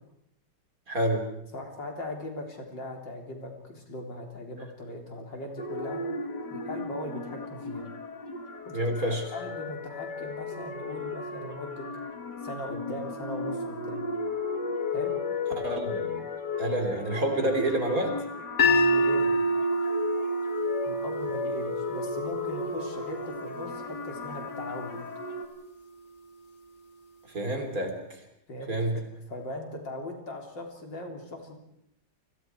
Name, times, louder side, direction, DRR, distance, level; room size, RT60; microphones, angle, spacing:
voice 1, 0.9-1.3 8.7-9.2 15.6-16.2 16.6-18.1 27.3-28.0 28.7-29.0, right 1 dB, 50° right, 4 dB, 4.1 m, -28 dB
voice 2, 1.5-6.0 6.5-7.8 8.7-8.8 9.1-11.9 12.4-14.0 14.9-15.1 18.6-19.4 20.8-25.0 28.5-28.7 29.3-31.6, left 1 dB, 90° left, 2 dB, 4.3 m, -39 dB
sound 1, 5.6-25.5, left 4 dB, 65° left, 2.8 m, -35 dB
sound 2, 18.6-24.8, equal, 50° left, 1.8 m, -28 dB
29.5 x 21.0 x 4.7 m, 0.79 s
omnidirectional pair, 1.9 m